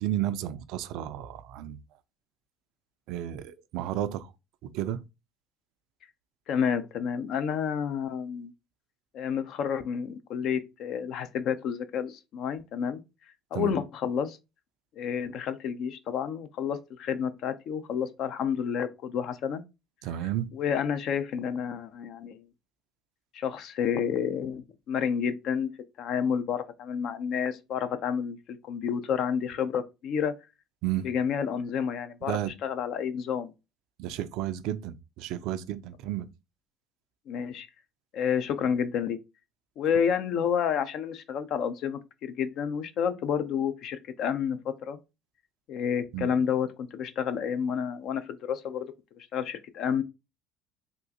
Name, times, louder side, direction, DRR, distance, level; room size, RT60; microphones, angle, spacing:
voice 1, 0.0-1.8 3.1-4.3 4.6-5.0 13.5-13.7 20.0-20.5 30.8-31.1 32.3-32.5 34.0-36.3 46.1-46.3, right 12 dB, 65° right, 0.3 m, -32 dB
voice 2, 6.5-8.5 9.1-13.0 13.5-14.4 15.0-19.6 20.2-22.5 23.3-25.7 26.0-30.3 31.0-33.5 37.3-37.7 38.1-39.2 39.8-45.0 45.7-50.0, left 7 dB, 60° left, 0.4 m, -30 dB
3.5 x 2.4 x 2.7 m
hypercardioid pair, 65°, 0 cm